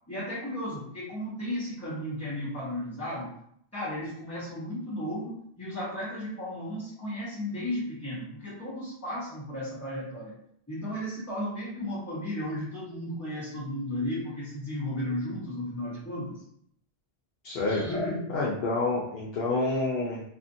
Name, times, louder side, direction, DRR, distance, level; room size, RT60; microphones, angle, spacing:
voice 1, 0.1-3.3 3.7-10.3 10.7-16.4 17.7-18.2, left 1 dB, 15° left, -11 dB, 0.8 m, -34 dB
voice 2, 17.4-17.8 18.3-20.2, left 3 dB, 70° left, -5 dB, 0.8 m, -28 dB
2.7 x 2.4 x 2.6 m, 0.68 s
omnidirectional pair, 1.1 m